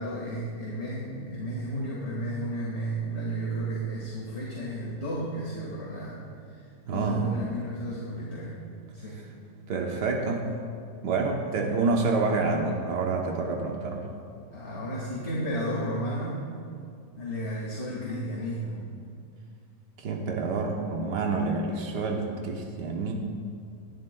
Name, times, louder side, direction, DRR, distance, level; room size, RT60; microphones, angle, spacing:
voice 1, 0.0-6.2 6.5-8.5 8.9-9.2 14.5-16.4 17.2-18.8, right 1 dB, 40° left, -5 dB, 2.0 m, -33 dB
voice 2, 6.9-7.3 9.7-10.5 11.0-14.1 20.0-23.1, right 3 dB, 85° right, 1 dB, 1.6 m, -28 dB
20.5 x 11.5 x 2.3 m, 2.3 s
omnidirectional pair, 1.8 m